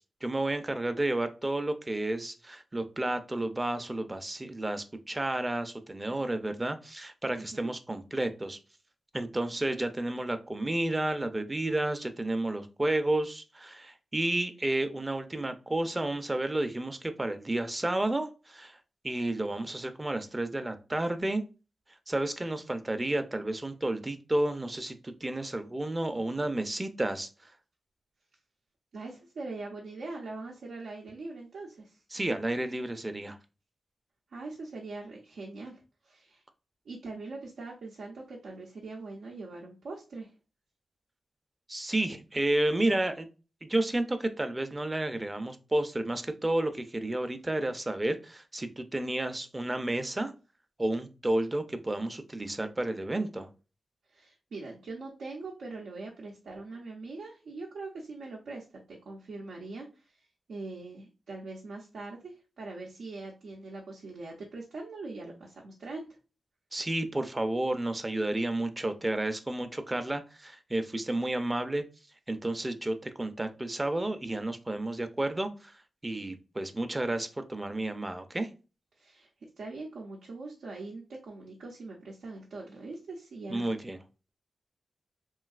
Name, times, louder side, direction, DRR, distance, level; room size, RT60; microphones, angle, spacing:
voice 1, 0.2-8.6 9.1-18.8 19.0-21.4 22.1-27.3 32.1-33.4 41.7-43.3 43.6-50.3 50.8-53.5 66.7-71.8 72.3-75.7 76.0-78.5 83.5-84.0, right 1 dB, 25° right, 9 dB, 0.5 m, -31 dB
voice 2, 7.3-7.7 28.9-32.0 34.3-36.4 36.9-40.3 54.1-66.1 79.0-79.3 79.6-83.7, right 3 dB, 85° right, -3 dB, 0.6 m, -42 dB
3.1 x 2.7 x 2.4 m, 0.33 s
cardioid pair, 60°, 0 cm